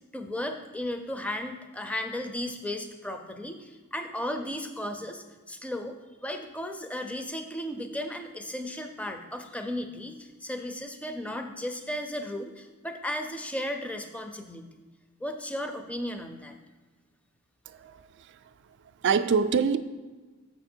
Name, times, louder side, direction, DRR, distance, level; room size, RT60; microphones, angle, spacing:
voice 1, 0.1-14.6 15.2-16.5, left 1 dB, 5° left, 6 dB, 0.5 m, -35 dB
voice 2, 17.7-18.5 19.0-19.8, right 6 dB, 55° right, 11 dB, 0.4 m, -26 dB
7.1 x 5.9 x 4.4 m, 1.3 s
head